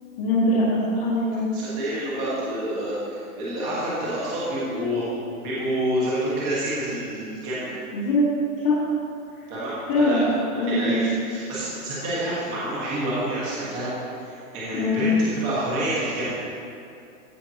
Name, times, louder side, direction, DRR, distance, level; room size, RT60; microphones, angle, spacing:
voice 1, 0.2-1.4 7.9-8.2 8.6-8.8 9.9-10.2 10.6-11.0 14.7-15.0, left 1 dB, 25° left, -10 dB, 1.6 m, -22 dB
voice 2, 1.5-5.1 5.4-7.7 9.5-10.2 10.5-13.9 14.2-16.4, right 1 dB, 20° right, -9 dB, 1.5 m, -28 dB
14.5 x 5.7 x 2.9 m, 2.6 s
hypercardioid pair, 165°, 45 cm